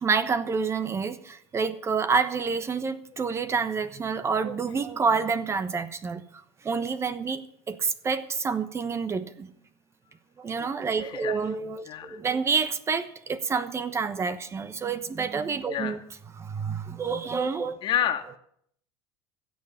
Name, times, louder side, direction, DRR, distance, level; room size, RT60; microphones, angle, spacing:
voice 1, 0.0-6.2 6.6-7.4 7.7-9.5 10.4-16.0 16.4-17.8, right 5 dB, 25° right, 13 dB, 1.1 m, -28 dB
voice 2, 11.0-11.4 11.9-12.2 15.7-16.0 17.8-18.4, left 11 dB, 50° left, 5 dB, 1.9 m, -29 dB
15.5 x 7.1 x 9.7 m, 0.65 s
supercardioid pair, 105°, 10 cm